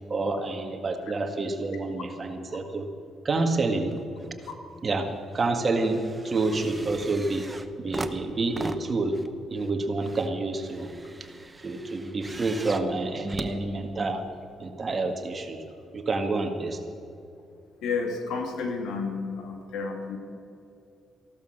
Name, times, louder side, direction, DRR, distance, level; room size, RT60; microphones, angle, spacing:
voice 1, 0.1-2.9 3.3-3.9 4.8-7.5 7.8-9.2 9.5-10.9 11.6-14.2 14.6-15.6 15.9-16.8, right 3 dB, 35° right, 6 dB, 1.8 m, -28 dB
sound 1, 3.9-4.6 4.9-14.3 15.1-15.2, right 2 dB, 15° right, 0.9 m, -40 dB
voice 2, 17.8-20.2, left 4 dB, 80° left, 4 dB, 2.3 m, -31 dB
15.5 x 12.0 x 6.6 m, 2.7 s
cardioid pair, 90°, 0 cm